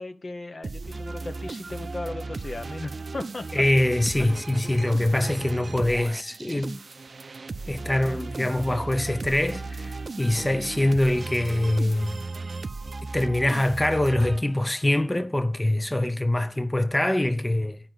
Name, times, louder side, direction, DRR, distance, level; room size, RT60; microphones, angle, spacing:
voice 1, 0.0-3.6 4.2-4.5, left 2 dB, 60° left, 0.8 m, -36 dB
sound 1, 0.6-14.9, right 3 dB, 75° right, 0.4 m, -36 dB
voice 2, 3.5-6.7 7.7-12.2 13.1-17.8, left 1 dB, 20° left, 0.6 m, -24 dB
8.8 x 5.3 x 7.8 m
wide cardioid pair, 55°, 0 cm